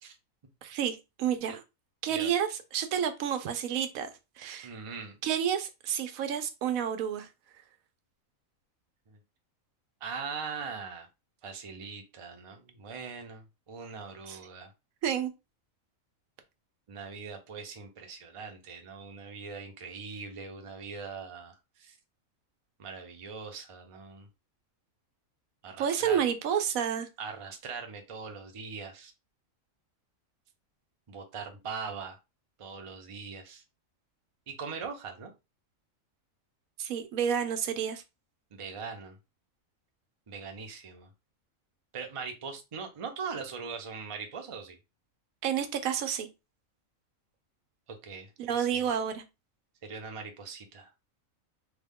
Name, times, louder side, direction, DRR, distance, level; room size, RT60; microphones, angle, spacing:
voice 1, 0.6-1.6 2.0-4.1 4.4-4.7 5.2-7.3 14.3-14.4 15.0-15.3 25.8-27.1 36.8-38.0 45.4-46.3 48.4-49.2, right 8 dB, 85° right, 1.1 m, -30 dB
voice 2, 4.6-5.2 9.1-9.2 10.0-11.1 11.4-14.7 16.9-22.0 22.8-24.3 25.6-26.2 27.2-29.1 31.1-32.2 32.6-33.6 34.5-35.3 38.5-39.2 40.3-41.1 41.9-44.8 48.0-48.3 48.6-48.9 49.8-50.9, right 5 dB, 40° right, 0.5 m, -41 dB
3.6 x 2.2 x 3.5 m
omnidirectional pair, 1.4 m